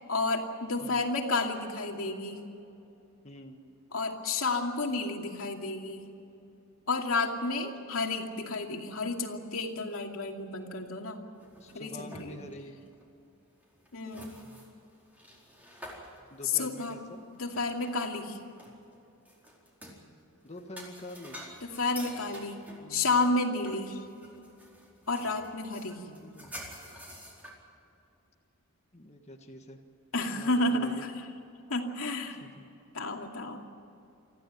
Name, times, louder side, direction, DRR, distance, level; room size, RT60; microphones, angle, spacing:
voice 1, 0.1-2.4 3.9-6.1 6.9-11.2 11.7-12.4 13.9-14.4 16.5-17.0 17.4-18.4 21.8-24.0 25.1-26.0 30.1-31.1 31.7-32.5 32.9-33.6, left 3 dB, 85° left, 2 dB, 2.6 m, -31 dB
voice 2, 3.2-3.6 11.6-12.8 16.3-17.2 20.4-21.4 22.8-23.1 26.0-26.5 28.9-29.8 30.3-31.0 32.4-32.7, left 1 dB, 30° left, 3 dB, 1.5 m, -46 dB
sound 1, 11.3-12.6 12.9-13.0 13.6-18.2 18.6-20.0 20.5-27.5, equal, 10° right, 4.5 m, -49 dB
25.0 x 15.0 x 9.3 m, 2.8 s
head